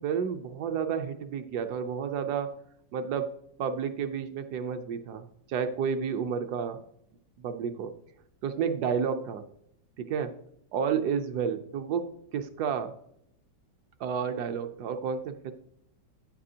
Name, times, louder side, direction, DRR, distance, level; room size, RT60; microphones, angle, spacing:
voice 1, 0.0-2.5 2.9-3.3 3.6-6.8 7.4-7.9 8.4-9.4 10.0-10.3 10.7-12.1 12.3-12.9 14.0-15.5, right 7 dB, 70° right, 8 dB, 1.1 m, -31 dB
9.2 x 8.7 x 2.7 m, 0.74 s
omnidirectional pair, 2.0 m